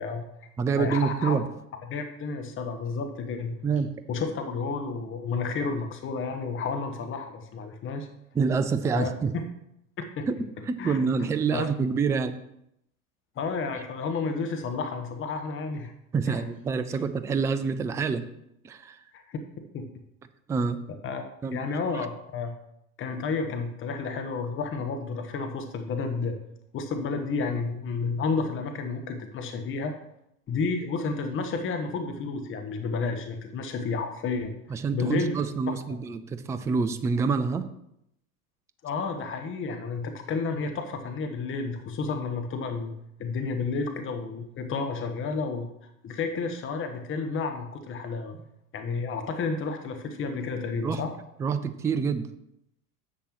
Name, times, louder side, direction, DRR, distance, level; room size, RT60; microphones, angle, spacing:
voice 1, 0.0-0.5 0.7-1.4 1.9-3.5 4.1-8.1 8.9-9.4 10.2-10.3 10.8-11.0 11.5-11.7 13.4-15.9 16.2-16.4 19.1-19.4 19.7-19.9 21.0-21.2 21.5-22.5 23.0-26.3 26.7-29.9 30.5-34.5 34.9-35.7 38.8-42.9 43.2-48.3 48.7-51.1, left 4 dB, 30° left, 6 dB, 1.2 m, -31 dB
voice 2, 0.6-1.4 3.6-3.9 8.3-9.3 10.3-10.4 10.7-12.4 16.1-18.3 18.6-19.0 20.5-20.8 21.4-21.6 34.7-37.7 50.8-51.0 51.4-52.3, right 5 dB, 10° right, 11 dB, 0.3 m, -27 dB
10.0 x 7.6 x 3.1 m, 0.78 s
hypercardioid pair, 85°, 42 cm